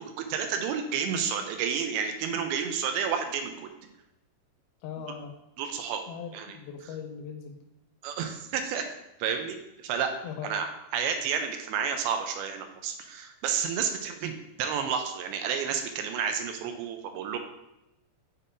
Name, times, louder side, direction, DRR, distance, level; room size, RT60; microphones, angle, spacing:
voice 1, 0.0-3.7 5.1-5.2 5.6-6.0 6.3-6.6 8.0-8.8 9.2-10.1 10.4-17.4, right 7 dB, 85° right, 5 dB, 2.5 m, -31 dB
voice 2, 4.8-5.3 6.1-7.6 10.2-10.5, left 7 dB, 80° left, 5 dB, 2.3 m, -39 dB
8.9 x 4.3 x 2.6 m, 0.89 s
omnidirectional pair, 4.5 m